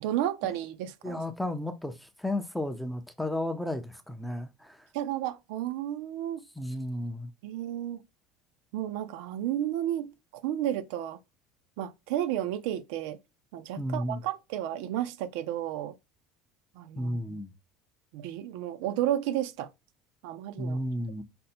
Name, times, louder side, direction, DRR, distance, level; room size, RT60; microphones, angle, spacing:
voice 1, 0.0-1.2 4.9-6.4 7.4-8.0 8.7-11.2 11.8-13.2 13.5-15.9 16.7-17.4 18.1-19.7 20.2-20.8, right 12 dB, 75° right, 0.5 m, -32 dB
voice 2, 1.0-4.9 6.6-7.3 13.8-14.2 17.0-17.5 20.6-21.2, left 1 dB, ahead, 0.5 m, -33 dB
5.2 x 2.1 x 4.2 m
cardioid pair, 150°, 0 cm